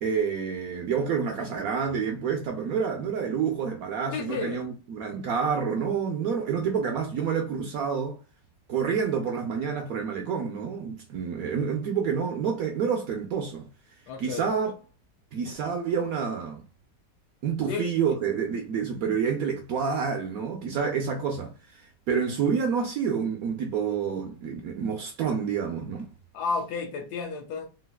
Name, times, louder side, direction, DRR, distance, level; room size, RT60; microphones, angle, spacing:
voice 1, 0.0-8.2 8.7-13.7 14.2-14.7 15.3-16.6 17.4-21.8 22.1-26.1, right 6 dB, 70° right, 0.9 m, -28 dB
voice 2, 4.1-4.7 14.1-14.5 17.7-17.9 26.3-27.7, left 4 dB, 70° left, 1.1 m, -32 dB
3.9 x 2.3 x 2.2 m
omnidirectional pair, 1.9 m